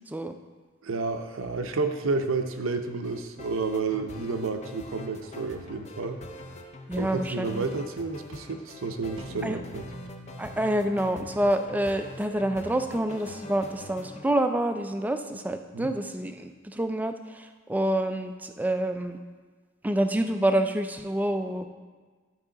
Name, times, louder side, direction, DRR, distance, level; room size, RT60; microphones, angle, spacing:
voice 1, 0.8-6.2 7.0-9.8 15.7-15.9, right 4 dB, 85° right, 7 dB, 0.6 m, -30 dB
sound 1, 3.0-14.3, left 1 dB, 35° left, 0.6 m, -44 dB
voice 2, 6.9-7.6 9.4-9.6 10.4-19.2 19.8-21.6, right 1 dB, 10° right, 7 dB, 0.3 m, -27 dB
sound 2, 9.2-13.8, right 1 dB, 25° right, 0.7 m, -46 dB
11.5 x 4.9 x 3.8 m, 1.4 s
head